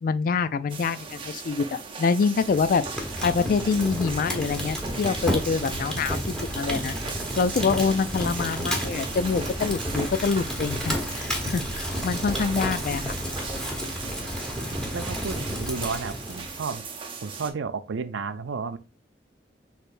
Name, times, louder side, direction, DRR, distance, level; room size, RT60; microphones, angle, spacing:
voice 1, 0.0-7.0 7.4-13.1, left 5 dB, 50° left, 0.3 m, -26 dB
sound 1, 0.7-17.5, right 5 dB, 30° right, 0.7 m, -39 dB
Fire, 2.3-16.7, equal, 5° left, 1.0 m, -31 dB
voice 2, 14.9-16.8 17.2-18.8, right 5 dB, 90° right, 0.5 m, -32 dB
6.3 x 3.3 x 2.5 m
head